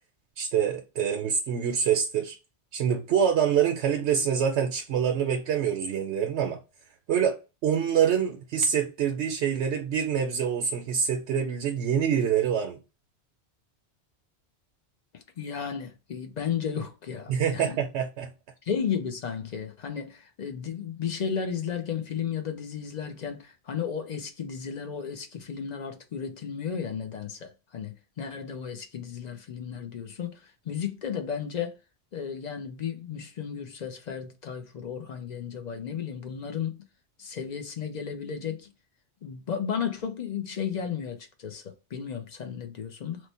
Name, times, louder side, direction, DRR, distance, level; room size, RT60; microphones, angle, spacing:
voice 1, 0.4-2.4 2.7-6.6 7.1-7.4 7.6-12.8 17.3-18.3, right 8 dB, 75° right, 0.9 m, -25 dB
voice 2, 15.1-17.8 18.7-30.4 30.7-31.7 32.1-36.8 37.2-38.7 39.2-43.2, left 7 dB, 50° left, 0.5 m, -34 dB
3.1 x 2.1 x 4.1 m
omnidirectional pair, 1.1 m